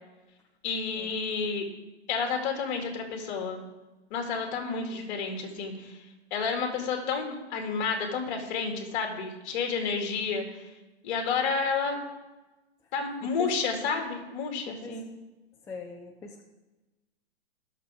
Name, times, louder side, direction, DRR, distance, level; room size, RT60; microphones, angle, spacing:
voice 1, 0.6-1.6 2.1-3.7 4.1-6.0 6.3-10.6 11.0-12.0 12.9-15.0, left 5 dB, 45° left, 2 dB, 2.5 m, -30 dB
voice 2, 14.7-15.0 15.7-16.4, left 4 dB, 10° left, 1 dB, 0.5 m, -41 dB
19.0 x 6.6 x 3.6 m, 1.1 s
hypercardioid pair, 135°, 34 cm